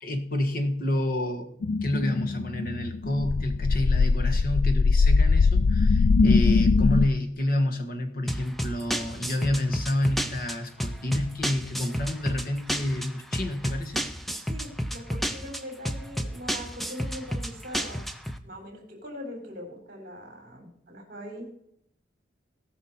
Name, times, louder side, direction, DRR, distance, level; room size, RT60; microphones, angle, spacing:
voice 1, 0.0-1.5 1.8-14.0, left 1 dB, 50° left, 4 dB, 1.6 m, -29 dB
sound 1, 1.6-7.1, left 4 dB, 65° left, 0.3 m, -21 dB
sound 2, 8.3-18.4, equal, ahead, 0.6 m, -31 dB
voice 2, 14.4-18.1 18.4-21.5, equal, 50° right, 1 dB, 3.6 m, -41 dB
18.0 x 6.2 x 4.3 m, 0.70 s
head